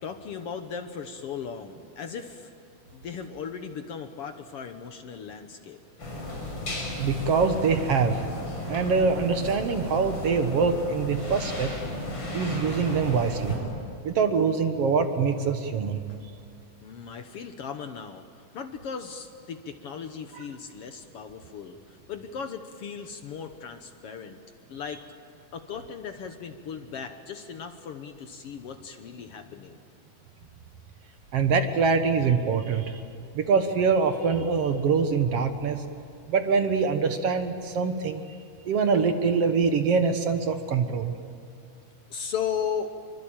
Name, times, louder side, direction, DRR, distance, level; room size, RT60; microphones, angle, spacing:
voice 1, 0.0-2.5 2.9-5.8 16.8-18.2 18.5-24.4 24.7-25.1 25.5-29.8 42.1-42.9, left 7 dB, 60° left, 7 dB, 1.8 m, -37 dB
sound 1, 6.0-13.6, left 1 dB, 40° left, 6.5 m, -34 dB
voice 2, 7.0-8.3 8.7-11.7 12.3-13.6 14.0-16.0 31.3-33.0 33.3-36.0 36.3-38.2 38.7-41.2, right 5 dB, 60° right, 7 dB, 2.0 m, -24 dB
26.5 x 24.0 x 8.9 m, 2.5 s
omnidirectional pair, 3.4 m